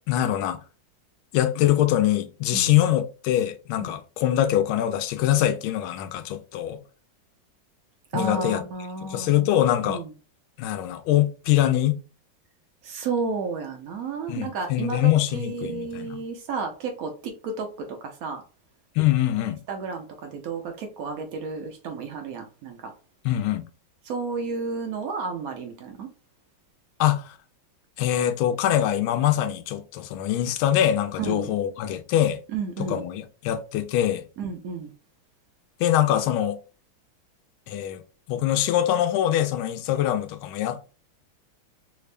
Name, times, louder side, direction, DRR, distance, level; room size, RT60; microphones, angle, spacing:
voice 1, 0.1-0.6 1.3-6.8 8.1-8.6 9.0-10.0 10.6-12.0 14.3-16.2 19.0-19.6 23.2-23.7 27.0-27.3 28.0-32.4 32.8-34.2 35.8-36.6 37.7-38.0 38.3-40.9, left 12 dB, 90° left, 1.4 m, -23 dB
voice 2, 8.1-9.5 9.8-10.1 12.8-18.4 19.7-22.9 24.0-26.1 31.2-31.6 32.5-33.0 34.4-34.9, right 4 dB, 80° right, 0.8 m, -32 dB
3.5 x 3.3 x 2.4 m
omnidirectional pair, 2.2 m